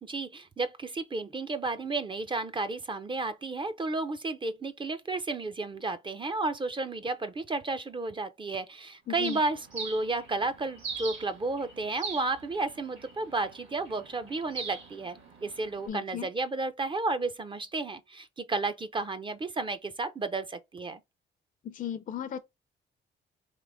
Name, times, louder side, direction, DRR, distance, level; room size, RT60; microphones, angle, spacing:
voice 1, 0.0-21.0, right 3 dB, 25° right, 0.5 m, -32 dB
voice 2, 9.1-9.4 15.9-16.3 21.6-22.4, left 9 dB, 40° left, 0.5 m, -35 dB
Bird, 9.2-15.9, right 5 dB, 70° right, 1.8 m, -42 dB
3.7 x 2.9 x 3.4 m
cardioid pair, 90°, 20 cm